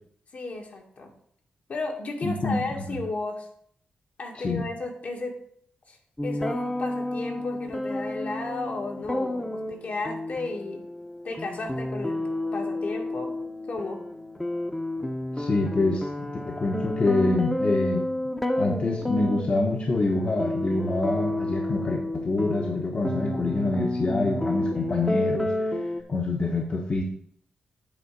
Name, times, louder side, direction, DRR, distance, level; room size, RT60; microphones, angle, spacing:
voice 1, 0.3-1.1 1.7-3.5 4.2-5.3 5.9-6.0 6.2-10.8 11.2-12.2 12.5-13.3 13.7-14.0, left 3 dB, 60° left, 1 dB, 2.0 m, -33 dB
voice 2, 2.2-3.0 4.3-4.6 15.4-18.1 18.5-25.8 26.1-27.0, left 2 dB, 45° left, -1 dB, 1.3 m, -26 dB
sound 1, 6.2-26.0, left 1 dB, 10° left, 1.0 m, -30 dB
8.7 x 3.7 x 6.7 m, 0.64 s
cardioid pair, 75°, 3 cm